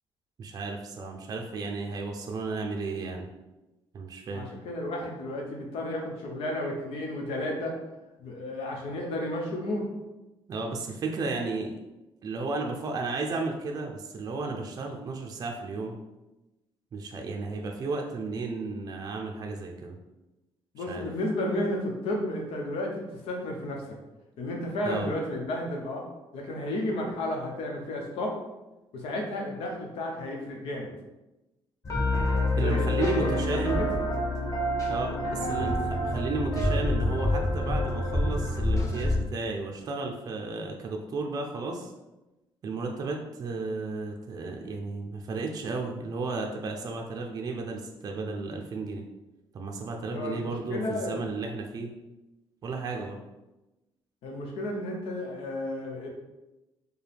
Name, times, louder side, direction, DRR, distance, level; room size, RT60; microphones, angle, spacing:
voice 1, 0.4-3.3 3.9-4.5 10.5-11.8 12.2-16.0 16.9-20.0 20.8-21.0 24.8-25.1 32.6-33.9 34.9-41.9 42.6-49.0 49.5-51.9 52.6-53.2, right 3 dB, 40° right, 1 dB, 0.4 m, -33 dB
voice 2, 4.3-7.7 8.2-9.9 20.7-23.8 24.4-26.0 26.3-28.4 28.9-30.9 32.5-33.9 50.1-51.3 52.9-53.0 54.2-56.1, left 1 dB, 85° left, 0 dB, 0.9 m, -32 dB
sound 1, 31.8-39.1, left 1 dB, 35° left, 0.9 m, -27 dB
4.7 x 2.2 x 3.4 m, 1.0 s
cardioid pair, 125°, 9 cm